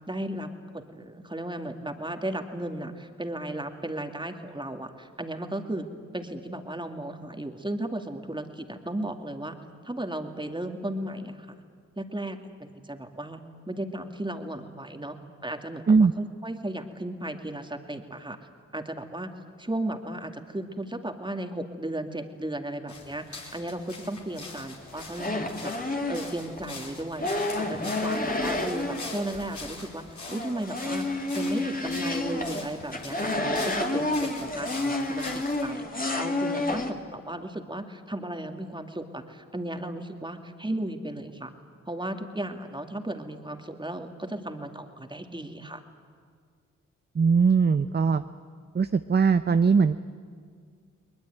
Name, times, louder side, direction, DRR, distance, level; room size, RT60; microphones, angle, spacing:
voice 1, 0.1-5.9 6.1-9.6 9.8-11.6 12.0-15.2 15.4-18.4 18.7-19.3 19.6-41.5 41.9-45.8, right 1 dB, 15° right, 5 dB, 2.4 m, -35 dB
sound 1, 22.9-35.7, left 3 dB, 60° left, 4.6 m, -43 dB
sound 2, 24.9-26.7 27.2-29.7 30.0-36.9, left 2 dB, 25° left, 2.5 m, -30 dB
voice 2, 47.1-48.2 48.7-50.0, right 5 dB, 30° right, 11 dB, 0.7 m, -20 dB
21.5 x 20.5 x 9.3 m, 2.1 s
supercardioid pair, 40°, 33 cm